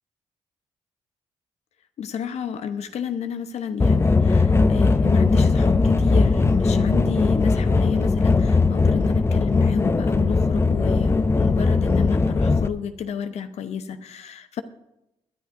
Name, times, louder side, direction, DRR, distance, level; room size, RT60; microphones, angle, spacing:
voice 1, 2.0-14.6, left 7 dB, 70° left, 9 dB, 0.9 m, -31 dB
sound 1, 3.8-12.7, left 3 dB, 20° left, 0.6 m, -19 dB
21.5 x 10.5 x 2.6 m, 0.90 s
cardioid pair, 65°, 11 cm